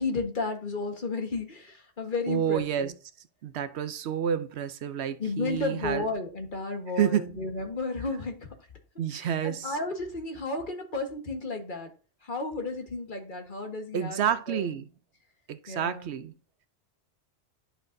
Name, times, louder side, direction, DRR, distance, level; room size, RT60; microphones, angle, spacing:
voice 1, 0.0-2.9 5.2-8.5 9.1-11.9 12.2-14.2 14.5-14.7 15.7-16.1, left 3 dB, 50° left, 1.5 m, -33 dB
voice 2, 2.3-2.9 3.4-6.1 6.9-7.4 9.0-9.8 13.9-14.9 15.5-16.3, right 9 dB, 75° right, 0.9 m, -29 dB
10.5 x 5.6 x 2.6 m
omnidirectional pair, 1.1 m